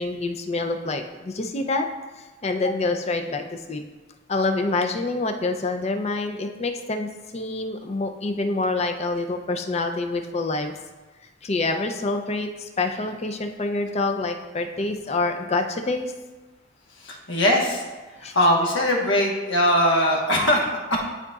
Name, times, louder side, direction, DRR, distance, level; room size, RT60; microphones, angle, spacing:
voice 1, 0.0-1.9 2.4-3.8 4.3-10.7 11.4-16.1 18.2-18.3, left 3 dB, 35° left, 5 dB, 0.5 m, -26 dB
voice 2, 17.0-17.8 18.1-21.0, equal, 70° left, -1 dB, 1.2 m, -21 dB
11.5 x 4.0 x 2.4 m, 1.2 s
head